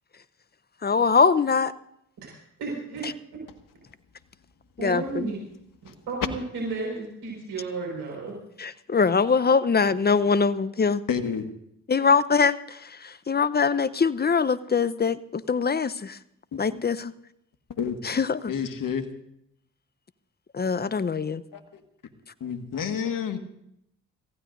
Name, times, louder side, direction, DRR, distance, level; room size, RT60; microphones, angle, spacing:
voice 1, 0.8-1.7 4.8-5.3 8.6-11.0 11.9-16.2 16.6-17.1 18.0-18.4 20.5-21.4, left 5 dB, 25° left, 15 dB, 0.8 m, -23 dB
voice 2, 2.6-3.1 4.8-5.4 6.1-8.3, right 3 dB, 75° right, -2 dB, 5.1 m, -32 dB
voice 3, 11.1-11.5 16.5-16.8 17.8-18.0 18.5-19.1 21.5-21.8 22.4-23.4, left 7 dB, 55° left, 7 dB, 1.8 m, -30 dB
26.5 x 15.5 x 2.6 m, 0.77 s
hypercardioid pair, 45°, 38 cm